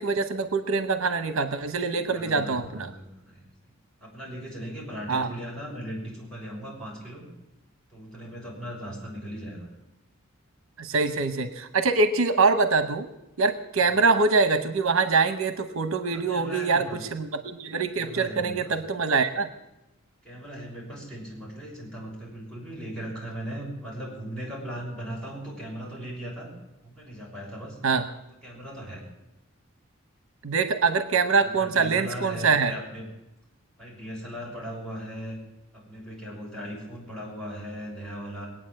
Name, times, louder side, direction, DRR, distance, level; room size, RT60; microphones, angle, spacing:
voice 1, 0.0-2.9 5.1-5.3 10.8-13.1 13.4-16.8 17.1-19.5 27.8-28.1 30.4-32.7, right 4 dB, 70° right, 9 dB, 0.9 m, -24 dB
voice 2, 2.1-3.4 4.0-7.3 7.9-9.7 13.8-14.0 16.1-17.0 18.0-18.7 20.2-26.5 26.8-27.8 28.4-29.1 31.4-33.0 33.8-35.4 35.7-38.5, equal, 5° left, -6 dB, 6.3 m, -38 dB
21.0 x 9.0 x 7.7 m, 0.94 s
head